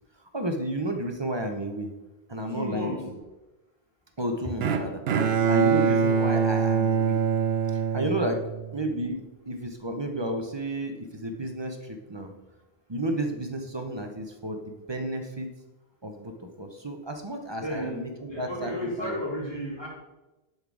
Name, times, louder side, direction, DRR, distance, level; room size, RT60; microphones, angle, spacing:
voice 1, 0.3-1.9 2.3-3.2 4.2-5.0 5.4-7.2 7.7-8.4 8.7-12.3 12.9-15.5 16.0-18.7 19.0-19.2, right 1 dB, 30° right, 5 dB, 0.7 m, -32 dB
voice 2, 2.5-3.1 17.6-18.0 18.3-19.9, equal, 25° left, -3 dB, 2.2 m, -33 dB
Bowed string instrument, 4.6-8.8, right 6 dB, 75° right, 0.9 m, -24 dB
10.5 x 4.1 x 4.7 m, 1.0 s
omnidirectional pair, 1.1 m